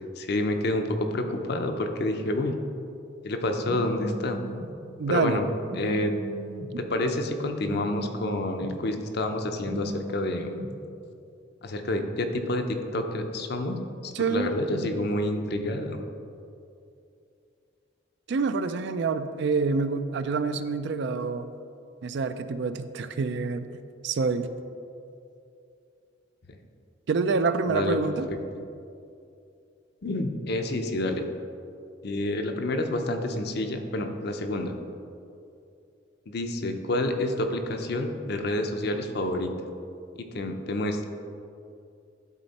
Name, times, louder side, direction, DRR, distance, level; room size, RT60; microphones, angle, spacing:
voice 1, 0.2-2.5 3.2-4.4 5.1-5.4 5.7-6.1 6.8-10.5 11.6-16.0 26.5-26.6 27.2-27.3 27.7-28.0 28.3-28.4 30.0-31.3 32.0-34.7 36.3-39.5 40.2-41.0, left 1 dB, 55° left, 6 dB, 0.6 m, -28 dB
Telephone, 3.6-4.7 5.6-6.7 7.6-8.7 9.6-10.7, right 1 dB, 40° right, 0.7 m, -37 dB
voice 2, 5.0-5.4 6.7-6.9 14.1-14.5 18.3-21.5 22.0-23.7 24.0-24.5 27.1-28.3, right 4 dB, 65° right, 11 dB, 0.4 m, -27 dB
11.0 x 4.2 x 4.1 m, 2.6 s
head